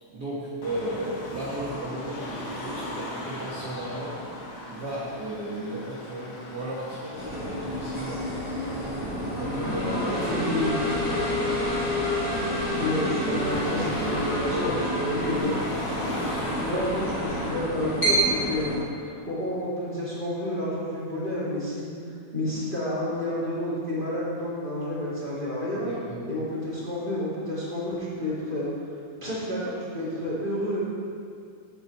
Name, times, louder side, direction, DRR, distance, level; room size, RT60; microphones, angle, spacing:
voice 1, 0.1-4.2 4.7-8.2 9.3-10.7 10.9-11.8 14.4-15.3 25.8-26.3, right 1 dB, 50° right, -8 dB, 1.3 m, -35 dB
Car passing by / Traffic noise roadway noise / Engine, 0.6-17.5, left 1 dB, 90° left, 3.0 m, -38 dB
sound 1, 7.2-18.8, equal, 25° left, 2.4 m, -28 dB
voice 2, 10.2-11.3 12.8-14.8 15.1-15.4 16.6-21.9 22.3-25.9 26.3-28.9 29.2-30.8, left 1 dB, 20° right, -9 dB, 2.0 m, -30 dB
8.8 x 7.0 x 4.6 m, 2.3 s
omnidirectional pair, 3.6 m